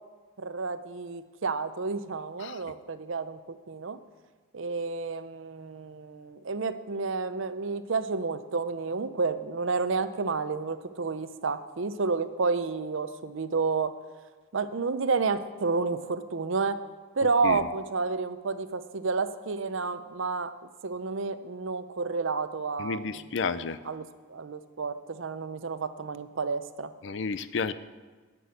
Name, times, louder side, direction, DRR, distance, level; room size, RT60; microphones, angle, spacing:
voice 1, 0.4-4.0 4.5-13.9 14.5-16.8 17.1-20.5 20.8-23.2 23.8-24.0 24.3-26.9, right 4 dB, 70° right, 12 dB, 0.6 m, -30 dB
voice 2, 22.8-23.8 27.0-27.7, left 5 dB, 60° left, 15 dB, 0.5 m, -31 dB
12.5 x 6.1 x 8.2 m, 1.4 s
head